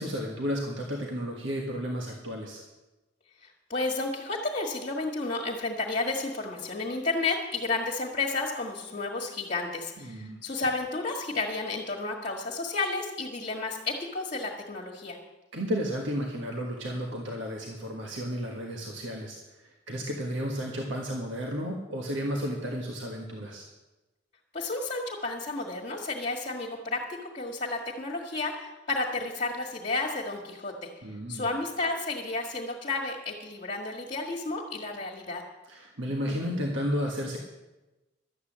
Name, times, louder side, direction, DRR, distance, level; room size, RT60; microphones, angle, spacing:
voice 1, 0.0-2.6 10.0-10.4 15.5-23.6 31.0-31.5 35.7-37.4, equal, 80° right, 0 dB, 1.6 m, -33 dB
voice 2, 3.4-15.2 24.5-30.9 31.3-35.4, left 3 dB, 40° left, -3 dB, 1.6 m, -32 dB
12.5 x 8.7 x 7.5 m, 1.1 s
head